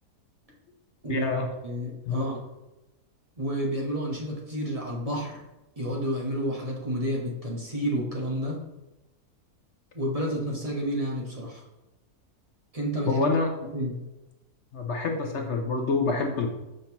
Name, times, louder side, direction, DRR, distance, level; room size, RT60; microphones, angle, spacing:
voice 1, 1.1-1.5 2.1-2.2 13.1-13.5 14.7-16.5, left 3 dB, 60° left, 3 dB, 0.8 m, -26 dB
voice 2, 1.6-2.4 3.4-5.4 5.8-8.6 9.9-11.6 12.7-13.3 13.7-13.9, equal, 25° right, -2 dB, 1.1 m, -30 dB
6.6 x 5.3 x 2.9 m, 1.0 s
omnidirectional pair, 1.6 m